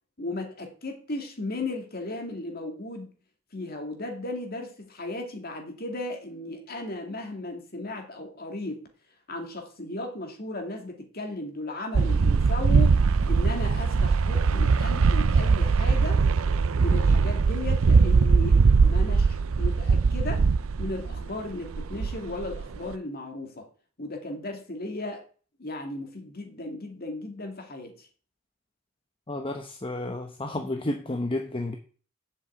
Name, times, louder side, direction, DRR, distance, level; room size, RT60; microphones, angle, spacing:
voice 1, 0.2-3.1 3.5-8.9 9.3-13.0 13.2-16.2 16.8-20.5 20.8-23.7 24.0-25.2 25.6-28.1, left 2 dB, 45° left, 3 dB, 2.6 m, -35 dB
sound 1, 11.9-21.3 21.6-22.9, right 4 dB, 70° right, 0.5 m, -21 dB
voice 2, 29.3-31.8, left 2 dB, 25° left, 5 dB, 0.9 m, -31 dB
7.9 x 6.3 x 8.1 m, 0.41 s
head